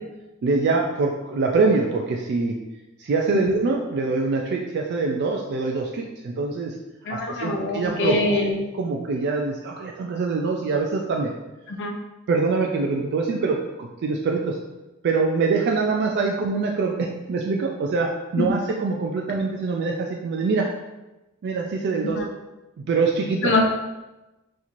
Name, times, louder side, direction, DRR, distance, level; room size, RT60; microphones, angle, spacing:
voice 1, 0.4-2.5 3.0-6.7 7.1-8.4 8.7-11.3 12.3-14.6 15.0-20.7 21.4-22.2 22.9-23.5, right 4 dB, 50° right, 0 dB, 0.3 m, -24 dB
voice 2, 7.1-8.5 11.7-11.9 22.0-22.3 23.4-23.7, left 2 dB, 55° left, 2 dB, 0.5 m, -24 dB
4.1 x 2.9 x 2.5 m, 1.0 s
head